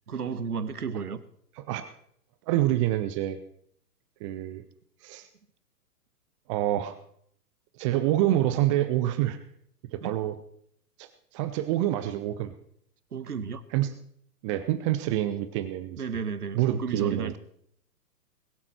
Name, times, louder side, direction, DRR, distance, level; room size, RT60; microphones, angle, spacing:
voice 1, 0.1-1.2 10.0-10.1 13.1-13.7 16.0-17.4, right 6 dB, 70° right, 14 dB, 1.5 m, -33 dB
voice 2, 2.5-3.4 4.2-4.6 5.0-5.3 6.5-7.0 7.8-9.4 9.9-10.3 11.0-12.5 13.7-13.9 14.4-16.0 16.5-17.4, right 13 dB, 20° right, 11 dB, 0.6 m, -27 dB
21.0 x 7.6 x 5.9 m, 0.66 s
figure-of-eight pair, 115°, 47 cm